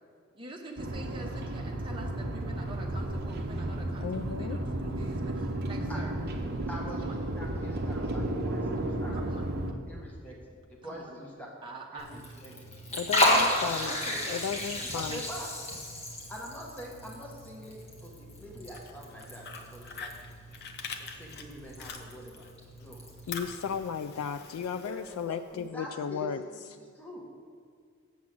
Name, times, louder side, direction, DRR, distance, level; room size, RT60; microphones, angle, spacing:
voice 1, 0.3-6.1 6.9-7.2 9.1-9.4 10.8-11.2 11.6-12.2 13.9-14.5 14.8-15.2, right 2 dB, 25° right, 0 dB, 1.0 m, -45 dB
sound 1, 0.8-9.7, right 1 dB, 50° right, 0.7 m, -33 dB
voice 2, 4.0-4.6 12.9-13.9 14.3-15.2 23.3-26.4, left 7 dB, 85° left, 10 dB, 0.3 m, -34 dB
voice 3, 6.7-9.2 9.9-11.5 11.9-12.7 13.1-14.2 14.9-15.5 16.3-20.1 20.5-20.6 21.0-22.5 22.8-23.0 24.8-27.3, equal, 10° left, -3 dB, 1.2 m, -45 dB
Liquid, 12.0-23.4, left 1 dB, 30° left, 1.4 m, -33 dB
Fire, 18.6-22.5 22.8-25.6, left 5 dB, 50° left, 0.7 m, -44 dB
7.1 x 6.0 x 7.6 m, 2.2 s
head